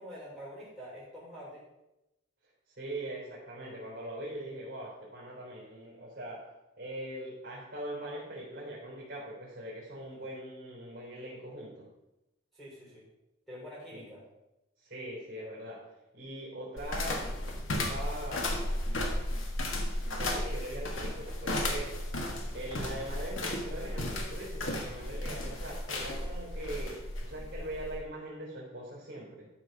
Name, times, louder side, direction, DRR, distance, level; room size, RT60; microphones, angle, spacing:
voice 1, 0.0-1.6 10.1-10.2 12.5-13.0 13.5-14.2, equal, ahead, -8 dB, 3.8 m, -46 dB
voice 2, 2.7-11.9 13.9-14.1 14.8-17.4 17.7-18.8 20.2-22.0 22.5-29.5, right 1 dB, 45° right, -6 dB, 3.7 m, -41 dB
sound 1, 16.8-28.0, left 1 dB, 85° left, 1.5 m, -34 dB
13.0 x 4.5 x 5.4 m, 0.93 s
head